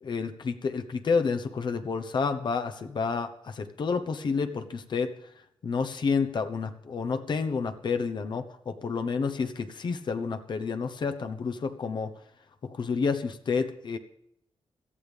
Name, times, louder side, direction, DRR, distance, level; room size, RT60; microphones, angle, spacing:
voice 1, 0.0-5.1 5.6-12.1 12.6-14.0, left 5 dB, 55° left, 8 dB, 1.1 m, -29 dB
17.5 x 13.0 x 3.5 m, 0.76 s
cardioid pair, 85°, 9 cm